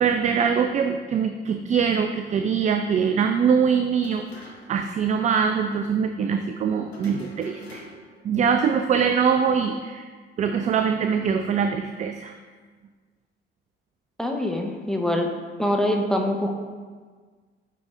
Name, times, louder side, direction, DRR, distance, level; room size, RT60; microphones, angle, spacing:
voice 1, 0.0-4.2 4.7-7.9 8.2-10.1 10.4-12.4, right 6 dB, 25° right, 7 dB, 0.3 m, -23 dB
sound 1, 4.0-4.9 5.1-5.2 6.9-8.2, left 2 dB, 85° left, 0.7 m, -45 dB
voice 2, 14.2-15.3 15.6-16.6, left 1 dB, ahead, 3 dB, 0.8 m, -24 dB
9.4 x 3.9 x 3.7 m, 1.5 s
figure-of-eight pair, 45°, 31 cm